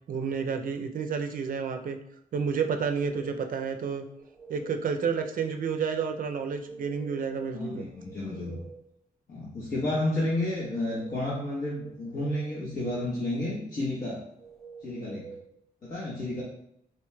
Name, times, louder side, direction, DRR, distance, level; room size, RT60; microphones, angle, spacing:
voice 1, 0.1-2.0 2.3-4.1 4.5-7.9, right 6 dB, 60° right, 6 dB, 0.4 m, -30 dB
sound 1, 2.6-3.5 4.0-4.8 6.4-7.4 7.8-8.9 10.3-11.3 11.8-12.8 14.4-15.4, right 5 dB, ahead, 0.5 m, -48 dB
voice 2, 7.5-8.6 9.3-14.2 14.8-15.3 15.8-16.4, left 1 dB, 60° left, -9 dB, 1.1 m, -31 dB
4.3 x 3.0 x 2.2 m, 0.76 s
wide cardioid pair, 145°, 16 cm